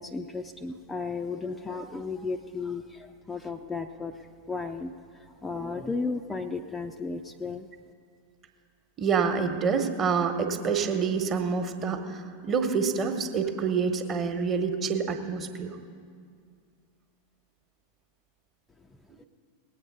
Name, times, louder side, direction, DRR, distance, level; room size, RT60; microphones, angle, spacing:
voice 1, 0.0-7.7 19.2-19.3, left 4 dB, 10° left, 6 dB, 0.5 m, -34 dB
voice 2, 9.0-15.8, right 5 dB, 30° right, 6 dB, 1.3 m, -27 dB
19.5 x 8.5 x 5.4 m, 2.2 s
figure-of-eight pair, 90°, 0 cm